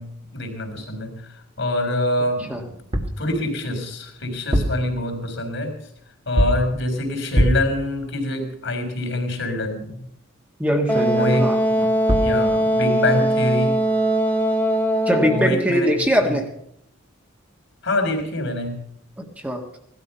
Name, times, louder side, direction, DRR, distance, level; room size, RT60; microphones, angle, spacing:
voice 1, 0.0-2.8 3.2-5.7 6.3-10.1 10.9-11.5 12.2-13.8 15.3-15.9 17.8-18.9, left 1 dB, 65° left, 4 dB, 3.8 m, -25 dB
sound 1, 2.9-3.2 4.3-4.9 6.4-6.7 7.3-7.8 11.8-11.9 12.1-12.4, equal, 30° right, 1.4 m, -21 dB
voice 2, 10.6-11.9 15.1-16.5 19.2-19.6, equal, 5° right, 2 dB, 1.5 m, -22 dB
Wind instrument woodwind instrument, 10.9-15.6, right 1 dB, 10° left, 1.9 m, -20 dB
17.5 x 12.5 x 5.6 m, 0.71 s
head